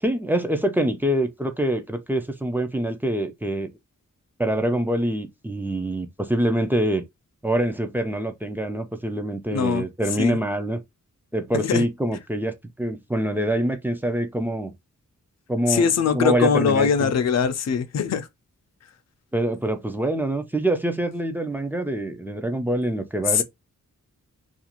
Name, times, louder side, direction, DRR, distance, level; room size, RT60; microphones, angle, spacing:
voice 1, 0.0-3.7 4.4-7.0 7.4-10.8 11.3-14.7 15.5-15.9 16.1-17.1 19.3-23.4, right 1 dB, 5° right, 0.4 m, -25 dB
voice 2, 9.5-9.8 10.2-10.4 11.5-11.9 15.7-18.3 23.3-23.4, left 6 dB, 55° left, 0.4 m, -21 dB
2.4 x 2.4 x 2.8 m
wide cardioid pair, 150°, 31 cm